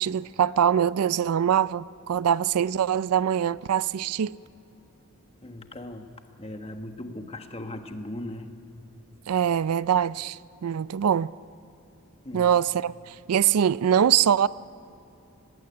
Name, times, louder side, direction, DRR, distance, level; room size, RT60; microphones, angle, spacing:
voice 1, 0.0-4.3 9.3-11.3 12.3-14.5, right 9 dB, 90° right, 0.4 m, -23 dB
voice 2, 5.4-8.5 12.2-12.5, left 1 dB, 25° left, 1.3 m, -38 dB
19.0 x 16.5 x 9.6 m
head